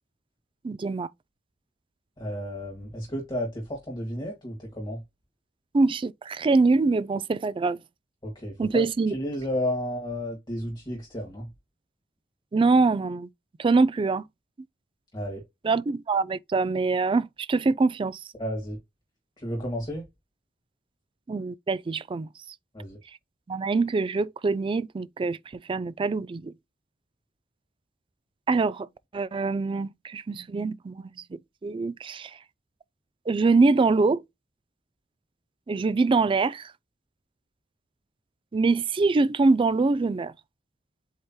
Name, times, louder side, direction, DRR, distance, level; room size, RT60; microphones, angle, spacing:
voice 1, 0.6-1.1 5.7-7.8 8.6-9.1 12.5-13.3 13.6-14.2 15.6-18.2 21.3-22.3 23.5-25.4 25.7-26.5 28.5-28.9 29.1-31.0 31.3-32.3 33.3-34.2 35.7-36.7 38.5-40.3, right 3 dB, 30° right, 0.3 m, -24 dB
voice 2, 2.2-5.0 8.2-11.5 15.1-15.4 18.4-18.8 19.4-20.0 22.7-23.0, equal, 25° left, 1.7 m, -32 dB
7.8 x 2.8 x 2.2 m
head